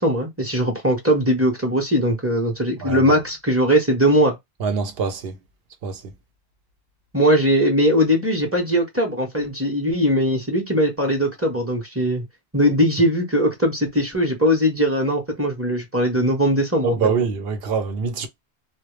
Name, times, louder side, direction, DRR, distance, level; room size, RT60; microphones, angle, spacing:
voice 1, 0.0-4.3 7.1-12.2 12.5-17.0, equal, 15° right, 0.7 m, -20 dB
voice 2, 2.8-3.2 4.6-5.4 5.8-6.0 16.8-18.3, right 5 dB, 70° right, 0.8 m, -24 dB
2.2 x 2.0 x 3.0 m
omnidirectional pair, 1.1 m